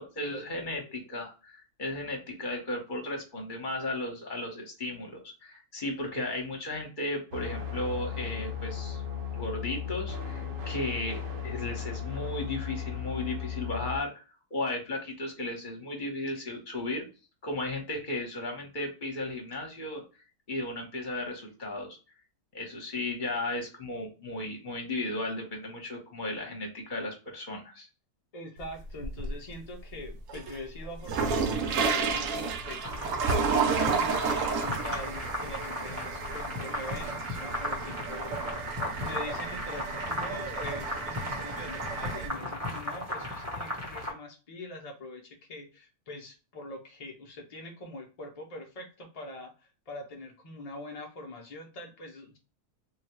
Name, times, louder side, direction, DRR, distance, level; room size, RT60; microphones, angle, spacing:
voice 1, 0.0-9.0 9.3-11.2 11.4-14.1 14.5-17.0 17.4-20.0 20.5-22.0 22.5-27.9, left 2 dB, 35° left, 1 dB, 1.0 m, -35 dB
sound 1, 7.3-14.0, left 7 dB, 55° right, 0.6 m, -36 dB
voice 2, 28.3-33.0 33.3-38.4 39.0-52.4, left 1 dB, 60° left, 1 dB, 0.3 m, -43 dB
sound 2, 28.6-29.5 30.0-42.3, right 5 dB, 75° right, 1.0 m, -32 dB
sound 3, 32.8-44.1, left 1 dB, 15° right, 0.7 m, -36 dB
3.7 x 2.3 x 2.9 m, 0.32 s
omnidirectional pair, 1.6 m